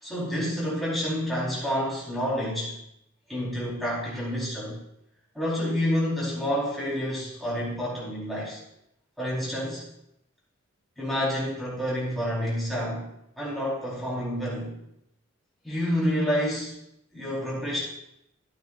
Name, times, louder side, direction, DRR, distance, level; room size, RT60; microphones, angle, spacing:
voice 1, 0.0-2.7 3.3-4.8 5.3-8.6 9.2-9.9 11.0-13.1 13.4-14.7 15.6-16.8 17.1-17.8, equal, ahead, -8 dB, 4.1 m, -28 dB
13.0 x 9.0 x 2.5 m, 0.81 s
head